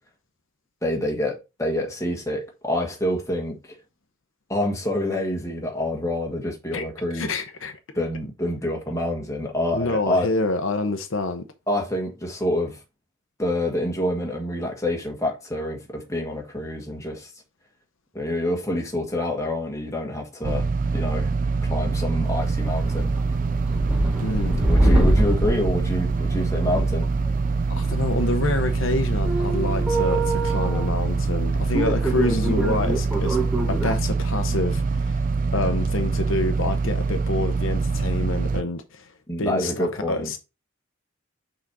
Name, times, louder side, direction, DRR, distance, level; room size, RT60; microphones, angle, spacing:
voice 1, 0.8-3.8 4.5-7.3 7.9-10.3 11.7-12.8 13.4-17.3 18.1-21.3 21.6-23.1 24.7-27.1 39.3-40.3, left 1 dB, 15° left, 1.5 m, -27 dB
voice 2, 7.1-7.7 9.7-11.5 24.2-25.1 27.7-33.4 33.7-35.2 35.5-39.1 39.4-40.4, left 2 dB, 70° left, 0.8 m, -27 dB
sound 1, 20.4-38.6, right 4 dB, 40° right, 0.3 m, -24 dB
sound 2, 22.2-33.9, right 1 dB, 5° right, 1.0 m, -26 dB
6.0 x 4.0 x 4.7 m
head